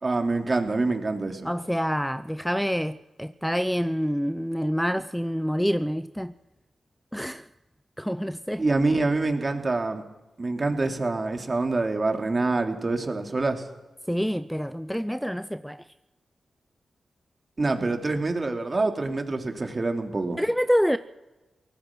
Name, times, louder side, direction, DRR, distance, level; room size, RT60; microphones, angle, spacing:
voice 1, 0.0-1.5 8.6-10.0 10.4-13.7 17.6-20.4, right 3 dB, 40° right, 3.1 m, -26 dB
voice 2, 1.4-6.3 7.1-7.5 8.0-8.6 14.1-15.8 20.4-21.0, equal, ahead, 0.6 m, -27 dB
23.5 x 18.5 x 6.2 m
cardioid pair, 65°, 0 cm